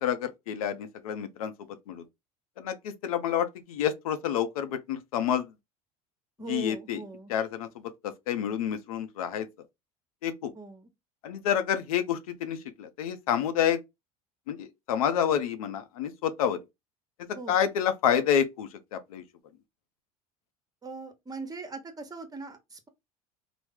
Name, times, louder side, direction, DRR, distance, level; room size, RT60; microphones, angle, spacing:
voice 1, 0.0-1.5 1.9-2.0 2.6-5.5 6.5-7.0 7.3-7.8 8.3-9.5 10.2-10.5 11.2-13.8 14.5-16.6 17.5-19.2, left 9 dB, 80° left, 0.5 m, -28 dB
voice 2, 6.4-7.3 10.5-10.9 17.3-17.6 20.8-22.9, right 4 dB, 20° right, 0.9 m, -40 dB
3.1 x 2.0 x 3.6 m
hypercardioid pair, 80°, 18 cm